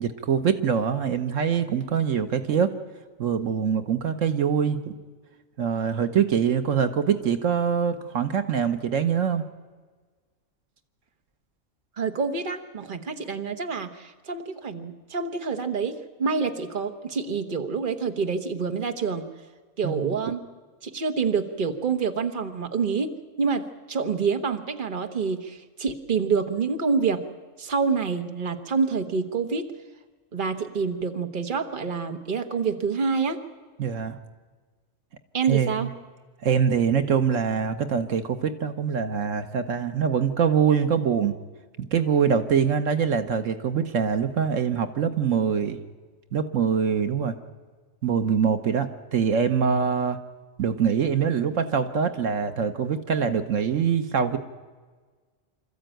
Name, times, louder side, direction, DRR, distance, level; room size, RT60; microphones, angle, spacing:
voice 1, 0.0-2.7 3.2-4.9 5.6-9.4 19.8-20.1 33.8-34.2 35.5-35.8 36.4-41.3 41.9-45.8 46.3-47.4 48.0-50.2 50.6-54.4, right 7 dB, 75° right, 9 dB, 1.4 m, -24 dB
voice 2, 12.0-19.2 19.8-20.4 20.8-23.1 23.4-27.2 27.6-29.6 30.3-33.4 35.3-35.9, right 5 dB, 40° right, 6 dB, 1.4 m, -27 dB
25.5 x 14.0 x 9.1 m, 1.4 s
omnidirectional pair, 1.3 m